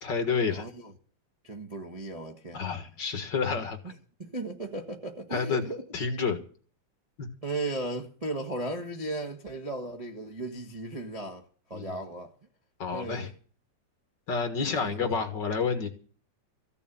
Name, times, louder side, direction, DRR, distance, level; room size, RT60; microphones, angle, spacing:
voice 1, 0.0-0.7 2.5-3.8 5.3-5.6 5.9-6.4 7.2-7.3 11.7-12.0 12.8-13.3 14.3-15.9, left 5 dB, 45° left, 2.1 m, -29 dB
voice 2, 0.5-0.9 1.4-2.6 4.2-5.8 7.4-11.4 11.7-12.3 12.9-13.3 14.6-15.2, right 2 dB, 25° right, 0.7 m, -36 dB
15.5 x 6.9 x 9.3 m
omnidirectional pair, 3.3 m